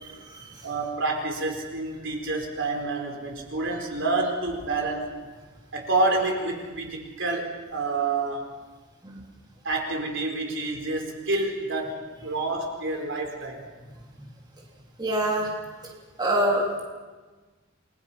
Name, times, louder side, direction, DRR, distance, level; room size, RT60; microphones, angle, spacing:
voice 1, 0.6-5.1 5.7-8.5 9.6-13.6, right 3 dB, 65° right, 2 dB, 4.5 m, -28 dB
voice 2, 15.0-15.5 15.8-15.9 16.2-16.8, right 1 dB, 20° right, -2 dB, 3.3 m, -25 dB
29.0 x 22.0 x 5.7 m, 1.3 s
head